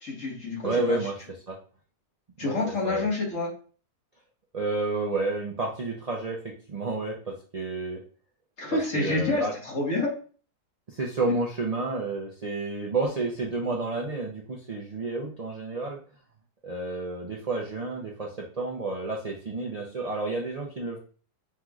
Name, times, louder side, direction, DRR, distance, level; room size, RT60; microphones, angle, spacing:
voice 1, 0.0-1.0 2.4-3.5 8.6-10.1, left 2 dB, 55° left, -3 dB, 1.8 m, -28 dB
voice 2, 0.6-1.6 2.4-2.5 2.8-3.1 4.5-8.0 8.7-9.5 10.9-16.0 16.6-21.0, right 3 dB, 85° right, -2 dB, 0.3 m, -30 dB
5.7 x 3.0 x 2.4 m, 0.40 s
omnidirectional pair, 1.7 m